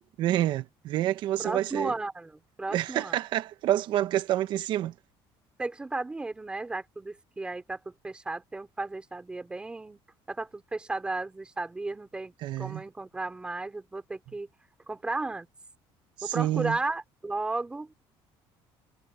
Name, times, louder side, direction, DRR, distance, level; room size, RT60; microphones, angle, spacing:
voice 1, 0.2-1.9 2.7-4.9 12.4-12.8 16.2-16.8, right 13 dB, 50° right, 1.2 m, -28 dB
voice 2, 1.4-3.2 5.6-10.0 10.3-12.3 12.6-14.5 14.9-15.5 16.2-17.9, right 2 dB, 10° right, 4.7 m, -34 dB
cardioid pair, 175°, 10 cm